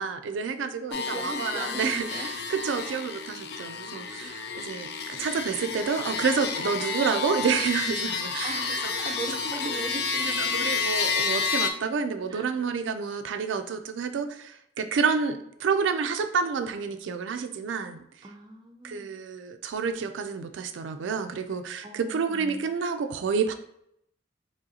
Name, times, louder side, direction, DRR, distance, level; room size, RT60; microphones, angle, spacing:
voice 1, 0.0-8.6 9.0-9.1 10.5-18.0 18.8-23.5, right 5 dB, 90° right, 8 dB, 0.4 m, -29 dB
sound 1, 0.9-11.7, left 5 dB, 60° left, 0.4 m, -30 dB
voice 2, 0.9-2.3 4.2-4.6 8.4-10.7 12.3-12.6 18.2-19.1 21.8-22.7, right 2 dB, 25° right, 3 dB, 0.4 m, -39 dB
3.8 x 3.0 x 2.8 m, 0.73 s
head